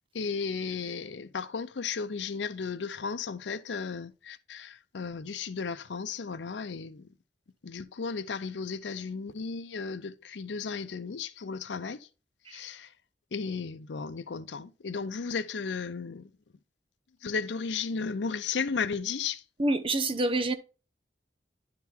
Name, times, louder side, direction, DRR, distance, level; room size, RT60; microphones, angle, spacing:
voice 1, 0.1-7.1 7.6-12.1 12.5-12.9 13.3-16.3 17.2-19.4, left 5 dB, 90° left, 0.6 m, -34 dB
voice 2, 19.6-20.5, right 2 dB, 30° right, 0.7 m, -27 dB
10.5 x 3.8 x 4.3 m
head